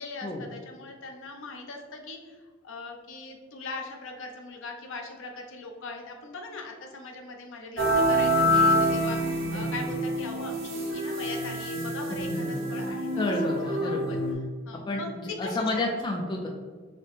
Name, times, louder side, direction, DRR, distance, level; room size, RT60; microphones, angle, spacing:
voice 1, 0.0-13.1 13.4-14.0 14.7-15.7, left 3 dB, 65° left, 3 dB, 0.6 m, -40 dB
sound 1, 7.8-14.3, equal, 65° right, 0.7 m, -26 dB
voice 2, 12.1-12.7 13.2-14.2 14.9-16.5, left 2 dB, 20° left, 0 dB, 0.3 m, -31 dB
4.0 x 2.0 x 3.2 m, 1.5 s
head